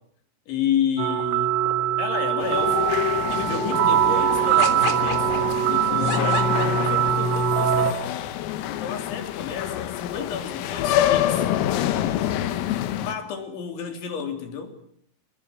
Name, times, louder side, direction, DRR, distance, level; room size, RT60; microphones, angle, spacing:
voice 1, 0.5-1.6 2.0-3.0 3.3-8.2 8.7-11.5 13.0-14.8, left 8 dB, 65° left, 5.6 m, -31 dB
sound 1, 1.0-7.9, right 9 dB, 75° right, 3.8 m, -22 dB
sound 2, 2.4-13.1, left 12 dB, 85° left, 4.2 m, -27 dB
sound 3, 4.6-7.3, left 5 dB, 40° left, 4.1 m, -31 dB
29.5 x 19.5 x 9.3 m
omnidirectional pair, 6.0 m